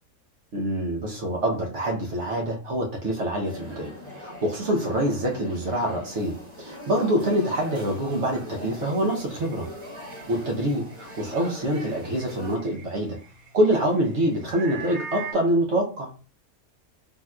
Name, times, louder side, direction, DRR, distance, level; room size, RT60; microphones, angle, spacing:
voice 1, 0.5-9.7 10.3-13.2 13.5-16.1, right 1 dB, 60° right, 0 dB, 1.1 m, -25 dB
sound 1, 3.4-12.6, left 1 dB, 20° right, 1.1 m, -41 dB
sound 2, 8.8-15.3, right 5 dB, 75° right, 1.3 m, -44 dB
3.5 x 2.7 x 2.3 m, 0.36 s
omnidirectional pair, 1.5 m